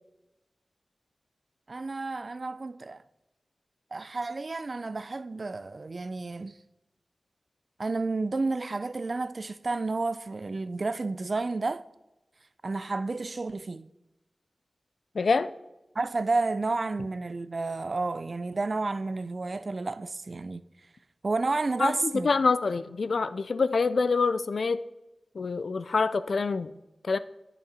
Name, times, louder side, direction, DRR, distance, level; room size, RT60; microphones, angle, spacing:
voice 1, 1.7-3.0 3.9-6.5 7.8-11.8 12.6-13.9 16.0-20.6 21.2-22.3, right 3 dB, 55° right, 0.4 m, -31 dB
voice 2, 15.1-15.5 21.8-21.9 22.2-24.8 25.3-26.7 27.0-27.2, left 4 dB, 85° left, 0.4 m, -26 dB
10.5 x 6.1 x 4.3 m
wide cardioid pair, 55°, 0 cm